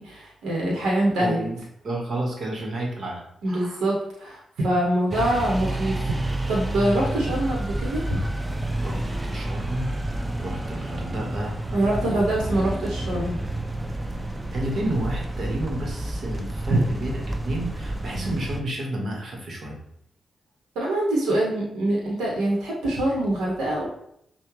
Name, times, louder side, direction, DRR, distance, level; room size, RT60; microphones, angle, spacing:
voice 1, 0.0-1.4 3.4-8.2 11.7-13.4 16.7-16.8 20.7-23.9, right 1 dB, 80° right, -3 dB, 1.0 m, -24 dB
voice 2, 1.2-3.8 8.8-11.6 12.0-12.5 14.5-17.2 17.4-19.8, right 1 dB, 60° right, 0 dB, 1.2 m, -31 dB
sound 1, 5.1-18.6, right 1 dB, 20° right, 0.6 m, -30 dB
5.6 x 2.2 x 3.1 m, 0.72 s
supercardioid pair, 45°, 0 cm